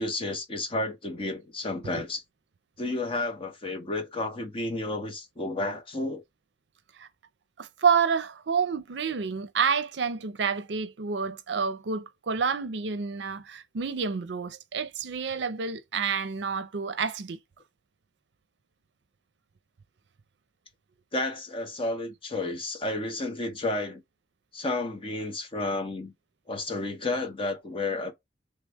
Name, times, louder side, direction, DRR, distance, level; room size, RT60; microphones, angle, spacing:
voice 1, 0.0-2.2 2.8-6.2 21.1-24.0 24.5-26.1 26.5-28.1, left 2 dB, 30° left, 0.9 m, -31 dB
voice 2, 7.6-17.4, right 6 dB, 70° right, 0.5 m, -29 dB
3.3 x 2.3 x 3.3 m
head